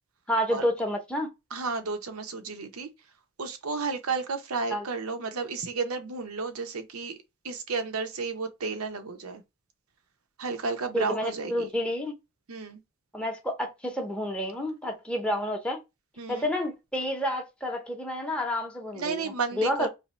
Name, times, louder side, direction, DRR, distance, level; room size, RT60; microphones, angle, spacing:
voice 1, 0.3-1.3 4.7-4.8 10.9-12.1 13.1-15.8 16.3-19.9, equal, 5° left, 0.7 m, -29 dB
voice 2, 1.5-2.9 3.4-7.1 7.4-9.4 10.4-11.7 12.5-12.8 16.2-16.5 18.9-19.9, right 4 dB, 80° right, 0.8 m, -32 dB
2.9 x 2.7 x 4.2 m
head